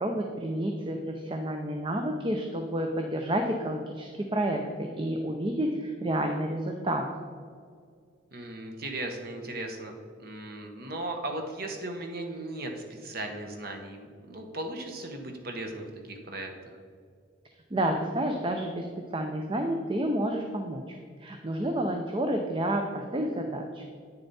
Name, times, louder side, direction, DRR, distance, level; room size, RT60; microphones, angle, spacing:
voice 1, 0.0-7.1 17.7-18.9 19.1-20.8 21.2-24.0, right 1 dB, 25° right, 3 dB, 0.5 m, -30 dB
voice 2, 8.3-9.9 10.2-16.5, right 2 dB, 50° right, 3 dB, 1.1 m, -37 dB
9.2 x 6.8 x 4.2 m, 2.2 s
head